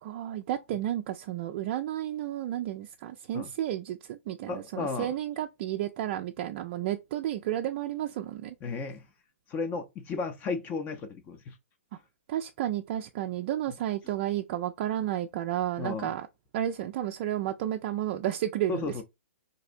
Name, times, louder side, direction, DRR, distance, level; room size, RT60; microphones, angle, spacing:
voice 1, 0.0-8.6 12.3-16.3 16.5-19.0, right 12 dB, 40° right, 0.3 m, -32 dB
voice 2, 4.5-5.1 8.6-9.0 9.5-11.5 15.8-16.1 18.7-19.0, left 4 dB, 25° left, 0.5 m, -34 dB
4.1 x 2.6 x 2.5 m
figure-of-eight pair, 120°, 7 cm